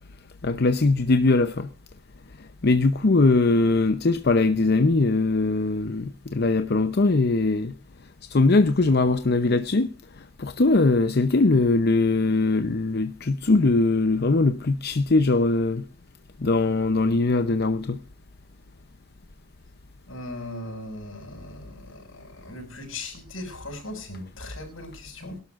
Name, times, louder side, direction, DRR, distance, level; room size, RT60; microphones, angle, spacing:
voice 1, 0.4-1.7 2.6-7.7 8.3-9.9 10.4-15.8 16.4-18.0, left 3 dB, 50° left, 0.7 m, -21 dB
voice 2, 20.1-25.4, left 1 dB, 80° left, 6.6 m, -38 dB
22.5 x 12.0 x 2.5 m
head